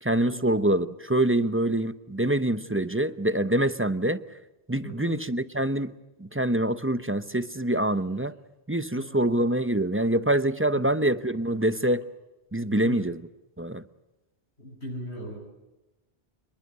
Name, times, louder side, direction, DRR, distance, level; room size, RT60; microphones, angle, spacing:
voice 1, 0.0-4.2 4.7-5.9 6.2-8.3 8.7-12.0 12.5-13.3 13.6-13.8, right 1 dB, 15° right, 13 dB, 0.7 m, -25 dB
voice 2, 4.8-5.2 9.0-9.2 12.7-13.0 14.6-15.4, left 1 dB, 75° left, -2 dB, 7.8 m, -38 dB
26.5 x 22.0 x 7.8 m, 1.0 s
omnidirectional pair, 1.1 m